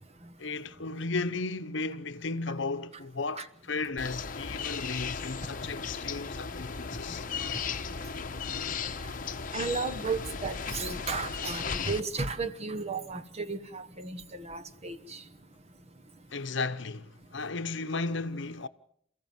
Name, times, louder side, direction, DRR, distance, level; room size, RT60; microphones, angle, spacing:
voice 1, 0.4-7.3 16.3-18.7, left 3 dB, 65° left, 0.9 m, -35 dB
sound 1, 4.0-12.0, left 5 dB, 40° left, 1.0 m, -36 dB
voice 2, 9.5-15.2, right 4 dB, 30° right, 1.1 m, -34 dB
28.5 x 15.0 x 7.6 m
head